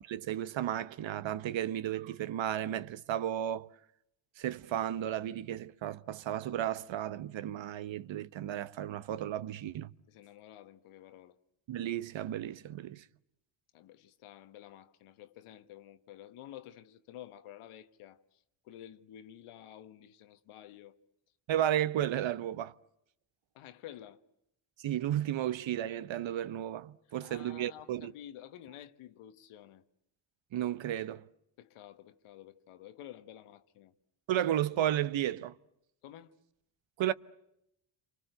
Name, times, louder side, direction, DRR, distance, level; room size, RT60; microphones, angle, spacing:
voice 1, 0.0-3.7 4.4-9.9 11.7-13.0 21.5-22.7 24.8-28.1 30.5-31.3 34.3-35.5 37.0-37.1, right 11 dB, 65° right, 1.0 m, -33 dB
voice 2, 10.1-11.4 13.7-21.0 23.5-24.2 27.2-29.8 31.6-33.9 36.0-36.3, left 11 dB, 85° left, 1.3 m, -51 dB
28.5 x 24.5 x 7.9 m
supercardioid pair, 65°, 49 cm